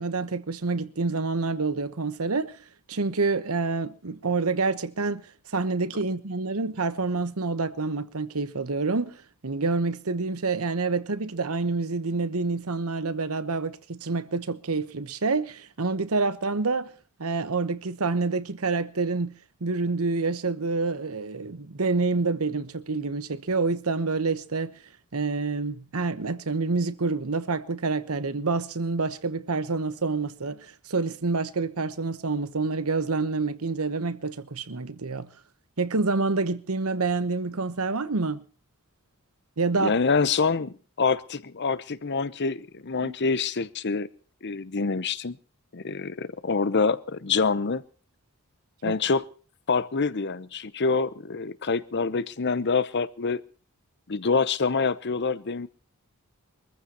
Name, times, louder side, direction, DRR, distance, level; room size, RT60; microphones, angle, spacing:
voice 1, 0.0-2.6 2.9-5.2 5.5-16.9 17.2-19.3 19.6-24.7 25.1-35.3 35.8-38.4 39.6-39.9 43.0-43.1 48.8-49.0, right 3 dB, 70° right, 1.1 m, -27 dB
voice 2, 39.8-44.1 44.4-45.4 45.7-47.8 48.8-49.2 49.7-53.4 54.1-55.7, left 4 dB, 50° left, 0.8 m, -26 dB
23.5 x 14.5 x 2.9 m
head